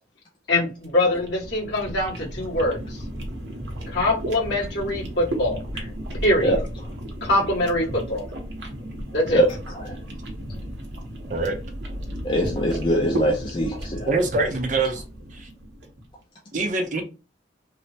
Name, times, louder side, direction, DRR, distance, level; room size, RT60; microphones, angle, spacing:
voice 1, 0.5-3.0 3.9-5.6 6.2-6.6 7.2-8.3 9.1-9.4, left 1 dB, 70° left, 1.5 m, -23 dB
sound 1, 0.8-16.0, right 1 dB, 75° right, 0.8 m, -34 dB
voice 2, 12.2-14.1, right 1 dB, 25° left, 0.4 m, -22 dB
voice 3, 14.1-15.0 15.3-15.5 16.5-17.0, right 3 dB, 40° right, 0.5 m, -24 dB
3.1 x 2.0 x 2.7 m
head